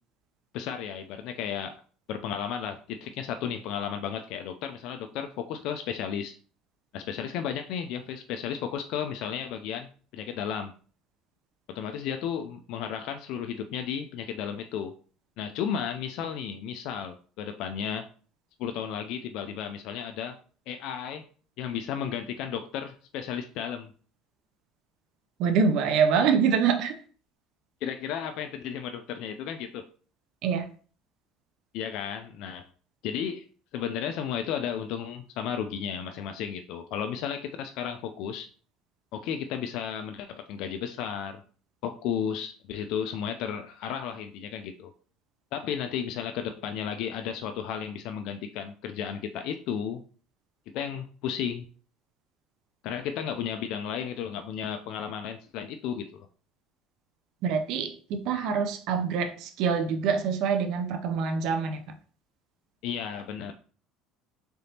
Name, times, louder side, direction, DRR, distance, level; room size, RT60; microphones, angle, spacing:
voice 1, 0.5-1.8 2.1-6.3 6.9-10.7 11.7-14.9 15.4-18.1 18.6-20.4 20.7-21.2 21.6-23.9 27.8-29.9 31.7-32.7 33.0-33.5 33.7-38.5 39.1-41.4 41.8-44.9 45.5-50.0 50.7-51.6 52.8-56.3 62.8-63.5, left 8 dB, 70° left, 0.3 m, -33 dB
voice 2, 25.4-27.0 30.4-30.7 57.4-61.8, right 6 dB, 65° right, 0.5 m, -25 dB
3.8 x 3.4 x 2.7 m
cardioid pair, 120°, 0 cm